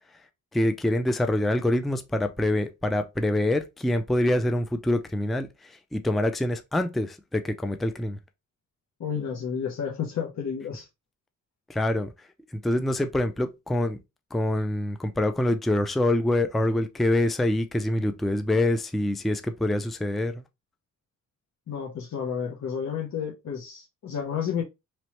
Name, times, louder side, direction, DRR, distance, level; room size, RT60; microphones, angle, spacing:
voice 1, 0.5-8.2 11.7-12.1 12.5-14.0 14.3-20.4, left 1 dB, ahead, 0.3 m, -25 dB
voice 2, 9.0-10.9 21.7-24.6, left 7 dB, 55° left, 0.9 m, -31 dB
3.1 x 3.1 x 2.9 m
cardioid pair, 100°, 32 cm